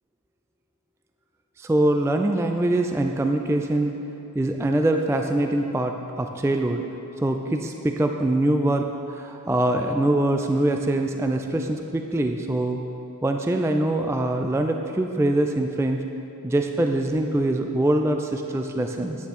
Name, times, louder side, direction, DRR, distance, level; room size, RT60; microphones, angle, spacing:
voice 1, 1.6-4.0 4.3-6.8 7.2-12.8 13.2-16.0 16.4-19.2, right 1 dB, 10° right, 4 dB, 0.4 m, -23 dB
9.5 x 9.4 x 4.4 m, 2.9 s
wide cardioid pair, 65°, 35 cm